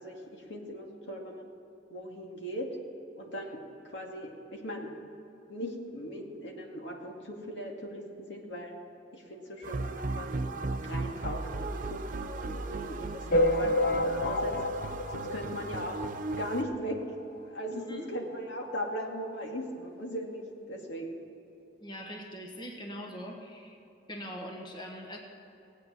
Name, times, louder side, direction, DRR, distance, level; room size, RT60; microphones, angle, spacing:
voice 1, 0.0-1.5 1.9-2.7 3.2-3.6 3.9-4.9 5.5-8.0 8.3-8.8 9.1-10.5 10.8-14.5 15.1-17.0 17.4-21.2, equal, 75° left, 0 dB, 2.1 m, -38 dB
sound 1, 9.6-16.6, right 3 dB, 50° right, 0.7 m, -36 dB
sound 2, 13.3-16.2 16.6-16.7 16.9-17.1 17.4-17.5 18.3-18.4 18.9-19.0, left 1 dB, 55° left, 0.7 m, -29 dB
voice 2, 17.7-18.1 21.8-23.8 24.1-25.2, equal, 25° left, 1 dB, 1.3 m, -42 dB
18.0 x 8.5 x 6.2 m, 2.9 s
head